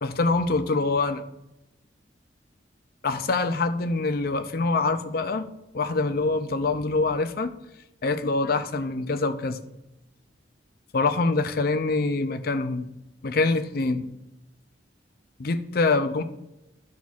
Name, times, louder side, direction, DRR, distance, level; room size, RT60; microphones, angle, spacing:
voice 1, 0.0-1.2 3.0-5.5 5.7-7.5 8.0-9.6 10.9-12.9 13.2-14.1 15.4-16.2, left 3 dB, 55° left, 9 dB, 0.5 m, -25 dB
12.5 x 6.3 x 2.4 m, 0.92 s
head